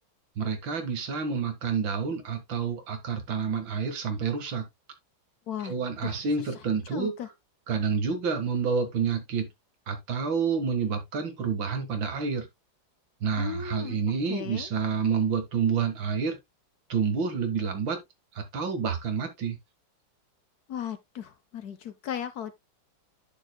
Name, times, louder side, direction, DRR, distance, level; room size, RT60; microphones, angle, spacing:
voice 1, 0.4-4.7 5.6-7.1 7.7-9.5 9.9-12.5 13.2-16.4 16.9-18.0 18.3-19.6, right 5 dB, 75° right, 2.3 m, -28 dB
voice 2, 6.9-7.3 13.4-14.0 14.3-14.7 20.7-22.5, left 9 dB, 65° left, 1.1 m, -36 dB
10.0 x 6.8 x 2.2 m
omnidirectional pair, 2.1 m